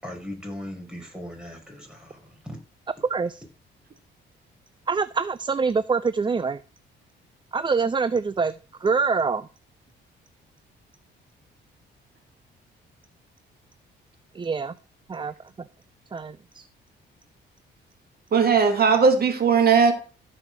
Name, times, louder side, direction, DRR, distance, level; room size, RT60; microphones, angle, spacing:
voice 1, 0.0-2.6, left 1 dB, 5° right, 1 dB, 5.4 m, -38 dB
voice 2, 3.0-3.4 4.9-6.6 7.5-8.5 8.8-9.5 14.3-14.7 15.1-15.3 16.1-16.7, right 5 dB, 25° right, 15 dB, 0.6 m, -25 dB
voice 3, 18.3-19.9, right 5 dB, 50° right, 5 dB, 2.5 m, -18 dB
14.5 x 5.7 x 6.3 m, 0.34 s
cardioid pair, 90°, 20 cm